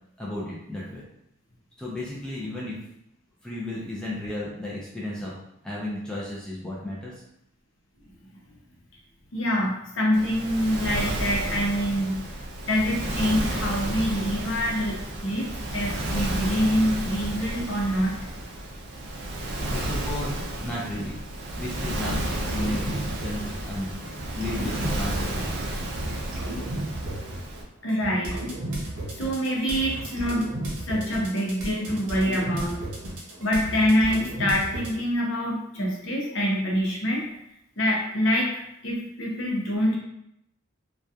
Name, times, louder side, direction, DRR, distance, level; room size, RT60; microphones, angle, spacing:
voice 1, 0.2-1.0 1.8-2.8 3.4-5.3 5.6-7.1 19.7-21.2 21.6-22.2 22.5-23.9 24.3-25.7, left 1 dB, 5° left, -7 dB, 0.4 m, -33 dB
voice 2, 9.3-12.2 12.7-15.5 15.7-18.2 27.8-28.5 29.2-30.5 30.8-32.8 33.4-37.3 37.8-40.0, equal, 60° left, -3 dB, 0.7 m, -25 dB
Waves surf, 10.1-27.6, right 1 dB, 50° right, 0.4 m, -32 dB
sound 1, 22.1-23.8 24.0-34.9, right 1 dB, 85° right, 0.7 m, -34 dB
2.7 x 2.3 x 2.3 m, 0.80 s
head